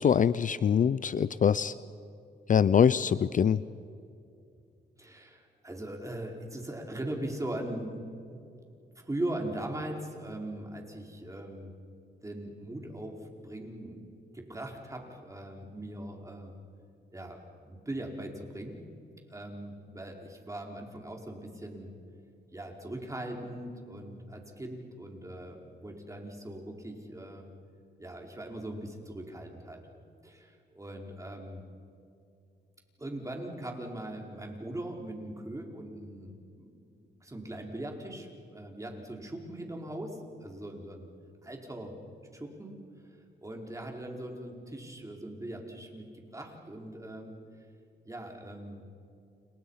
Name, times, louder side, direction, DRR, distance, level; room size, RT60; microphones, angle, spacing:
voice 1, 0.0-1.7 2.5-3.6, left 7 dB, 45° left, 17 dB, 0.6 m, -24 dB
voice 2, 5.0-8.5 8.9-11.7 12.2-16.5 17.1-18.8 19.3-21.9 22.5-27.5 28.0-29.9 30.2-31.6 33.0-41.1 41.4-41.9 42.3-42.8 43.4-47.3 48.0-48.9, right 1 dB, 15° right, 1 dB, 4.9 m, -40 dB
29.5 x 29.0 x 5.8 m, 2.5 s
cardioid pair, 80°, 18 cm